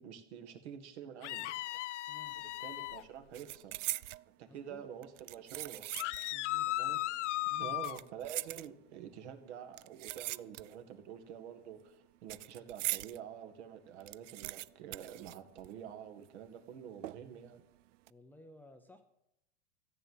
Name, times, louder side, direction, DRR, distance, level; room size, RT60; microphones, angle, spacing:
voice 1, 0.0-1.9 2.4-3.8 4.4-5.9 6.7-7.0 7.6-17.6, right 9 dB, 65° right, 8 dB, 2.0 m, -48 dB
sound 1, 1.2-3.0 5.9-8.0, left 17 dB, 75° left, 0.5 m, -36 dB
sound 2, 2.3-2.6 2.9-4.3 5.0-6.4 6.7-6.8 7.6-9.1 9.7-10.9 11.2-13.2 13.6-13.7 13.9-16.0 16.2-16.3 17.0-17.5 17.9-18.1, right 17 dB, 80° right, 0.5 m, -42 dB
voice 2, 4.5-4.8 6.3-6.7 7.5-7.7 18.1-19.0, left 2 dB, 5° left, 6 dB, 0.6 m, -56 dB
14.0 x 8.1 x 7.4 m, 0.84 s
supercardioid pair, 145°, 36 cm